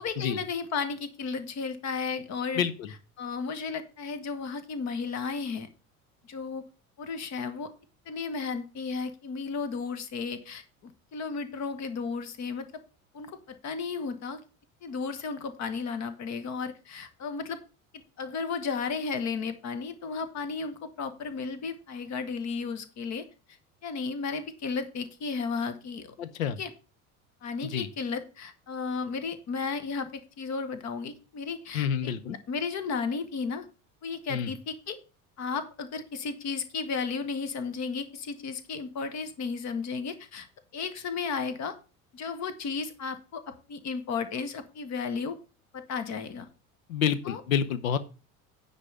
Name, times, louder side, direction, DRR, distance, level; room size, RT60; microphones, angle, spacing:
voice 1, 0.0-2.6 3.2-5.7 6.2-6.6 7.0-7.7 8.0-12.7 13.1-14.4 14.8-17.6 17.9-23.2 23.8-26.1 26.6-26.7 27.4-33.7 34.0-35.0 35.4-40.5 40.7-41.8 42.1-45.4 45.7-46.5 47.2-47.4, left 5 dB, 40° left, 11 dB, 1.4 m, -34 dB
voice 2, 2.6-2.9 26.2-26.6 27.6-27.9 31.7-32.4 34.3-34.5 46.9-48.0, left 8 dB, 70° left, 15 dB, 0.9 m, -28 dB
9.7 x 4.0 x 7.3 m, 0.33 s
figure-of-eight pair, 65°, 43 cm